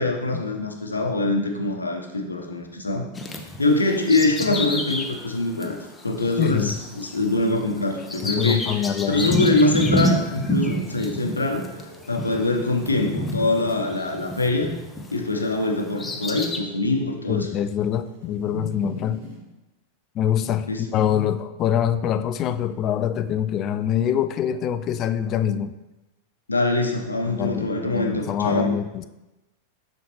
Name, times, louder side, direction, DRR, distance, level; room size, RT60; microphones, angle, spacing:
voice 1, 0.0-3.1 3.6-5.8 6.0-8.6 9.1-11.6 12.1-14.7 15.1-17.5 20.7-20.8 26.5-28.7, left 2 dB, 80° left, 0.9 m, -23 dB
Bird vocalization bird call bird song, 3.2-15.2 15.7-16.6, left 1 dB, 15° left, 0.8 m, -29 dB
voice 2, 6.4-6.7 8.2-9.6 17.3-19.2 20.2-25.7 27.3-29.0, left 9 dB, 35° left, 0.4 m, -25 dB
sound 1, 10.2-19.4, equal, 60° right, 2.3 m, -42 dB
6.9 x 6.3 x 3.1 m
figure-of-eight pair, 90°, 0 cm